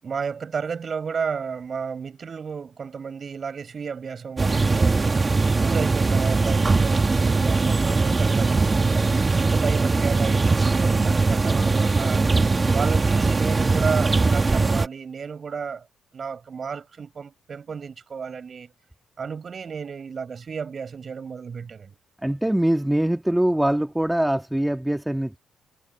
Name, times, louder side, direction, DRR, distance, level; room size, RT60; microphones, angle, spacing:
voice 1, 0.0-5.1 5.6-9.1 9.4-12.3 12.7-15.9 16.1-18.7 19.2-22.0, right 6 dB, 45° right, 7.9 m, -32 dB
sound 1, 4.4-14.9, right 3 dB, 25° right, 2.2 m, -20 dB
voice 2, 22.2-25.4, right 1 dB, 5° right, 2.5 m, -23 dB
cardioid pair, 90°, 0 cm